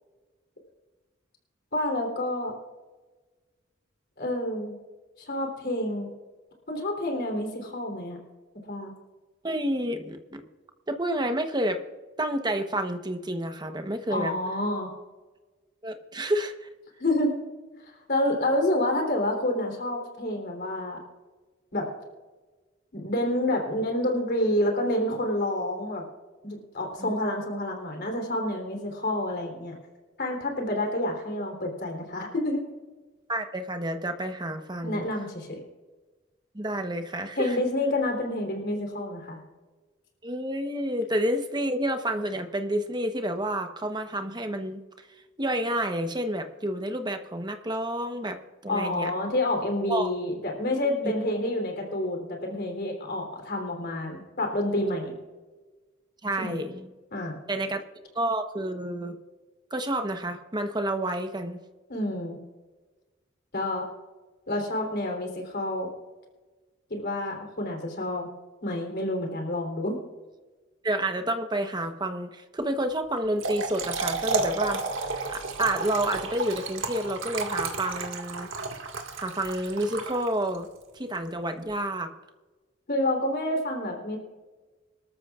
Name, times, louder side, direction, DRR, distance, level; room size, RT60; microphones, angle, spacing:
voice 1, 1.7-2.5 4.2-4.7 5.2-6.1 6.7-8.2 8.6-8.9 14.1-14.9 17.0-17.3 18.1-21.0 21.7-21.9 22.9-26.0 26.4-29.7 30.2-32.6 34.8-35.6 37.3-39.4 48.7-55.2 56.4-56.6 57.1-57.3 61.9-62.4 63.5-63.9 64.5-65.9 66.9-68.3 68.6-70.0 82.9-84.2, left 1 dB, 55° left, 2 dB, 3.5 m, -28 dB
voice 2, 9.4-10.4 10.9-11.8 12.2-14.3 15.8-16.7 27.0-27.1 33.3-35.0 36.5-37.6 40.2-44.8 45.4-49.1 49.9-50.1 51.0-51.1 56.2-56.9 57.5-57.8 58.1-59.2 59.7-61.6 70.8-78.5 79.2-80.7 80.9-82.1, right 1 dB, 20° right, 7 dB, 1.0 m, -29 dB
Trickle dribble / Fill (with liquid), 73.2-80.6, right 4 dB, 75° right, 1.9 m, -32 dB
25.5 x 13.5 x 2.5 m, 1.3 s
head